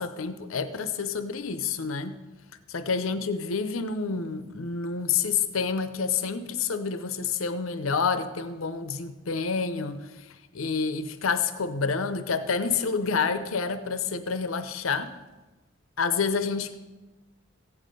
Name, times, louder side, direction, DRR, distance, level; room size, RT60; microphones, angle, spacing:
voice 1, 0.0-2.2 2.7-10.3 10.5-15.1 16.0-16.7, left 5 dB, 85° left, 11 dB, 0.7 m, -28 dB
15.5 x 9.5 x 5.3 m, 1.2 s
head